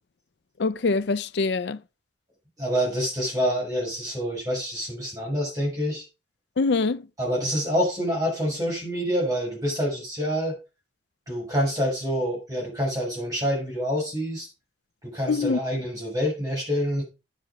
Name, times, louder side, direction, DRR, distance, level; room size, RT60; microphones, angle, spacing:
voice 1, 0.6-1.8 6.6-7.1 15.3-15.6, left 4 dB, 60° left, 0.4 m, -24 dB
voice 2, 2.6-6.0 7.2-10.6 11.3-14.5 15.0-17.0, equal, 20° right, 6.4 m, -27 dB
9.7 x 7.6 x 4.8 m
head